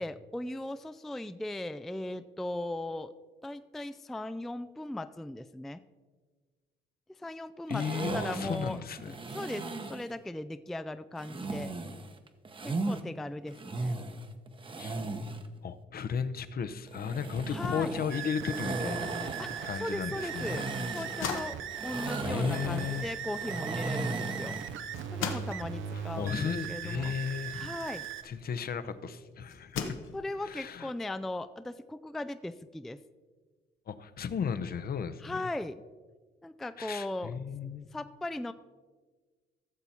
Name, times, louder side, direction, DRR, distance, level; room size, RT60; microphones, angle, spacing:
voice 1, 0.0-3.1 3.4-5.8 7.2-7.8 8.1-8.8 9.3-11.7 12.6-13.9 17.5-18.0 19.4-20.6 20.9-21.6 21.8-24.6 25.1-27.1 27.5-28.1 30.1-33.0 35.2-35.8 36.4-37.3 37.9-38.5, left 1 dB, ahead, 11 dB, 0.3 m, -38 dB
voice 2, 7.7-9.1 14.8-15.0 15.6-19.3 19.6-20.6 22.2-23.1 25.9-27.7 28.2-29.8 30.4-30.9 33.9-35.4 36.8-37.9, left 7 dB, 50° left, 12 dB, 0.7 m, -35 dB
sound 1, 7.7-10.1 11.2-13.0 13.5-15.5 16.9-24.8, right 2 dB, 25° right, 0.8 m, -37 dB
sound 2, 18.1-28.2, right 9 dB, 80° right, 0.7 m, -39 dB
sound 3, 20.9-28.8 29.5-30.5, left 6 dB, 90° left, 1.1 m, -41 dB
14.5 x 6.9 x 4.3 m, 1.4 s
cardioid pair, 90°, 20 cm